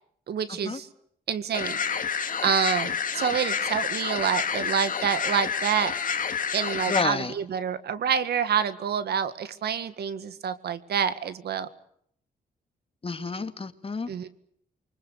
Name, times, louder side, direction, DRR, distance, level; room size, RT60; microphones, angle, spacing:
voice 1, 0.3-0.9 1.3-5.9 6.5-11.7 14.1-14.3, right 8 dB, 80° right, 13 dB, 1.9 m, -27 dB
sound 1, 1.5-7.0, left 6 dB, 55° left, 2.2 m, -29 dB
voice 2, 6.9-7.3 13.0-14.3, left 4 dB, 35° left, 9 dB, 2.3 m, -30 dB
28.0 x 24.5 x 6.9 m, 0.68 s
cardioid pair, 75°, 16 cm